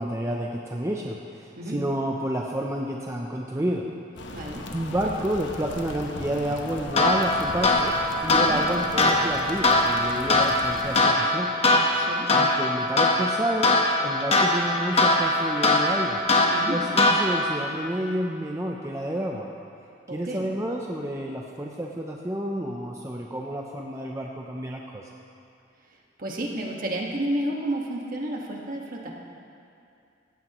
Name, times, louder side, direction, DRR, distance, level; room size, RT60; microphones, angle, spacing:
voice 1, 0.0-3.9 4.7-7.9 8.2-11.5 12.0-13.8 14.0-16.2 16.7-19.5 20.1-25.1, right 1 dB, 15° right, -1 dB, 0.6 m, -30 dB
sound 1, 4.2-11.0, left 2 dB, 75° left, 1.0 m, -38 dB
voice 2, 4.3-4.6 8.4-8.6 11.9-12.3 16.5-16.8 20.1-20.4 26.2-29.1, right 1 dB, 45° right, -1 dB, 1.6 m, -31 dB
sound 2, 6.9-17.6, left 2 dB, 35° left, 1.2 m, -22 dB
16.5 x 14.5 x 3.1 m, 2.5 s
head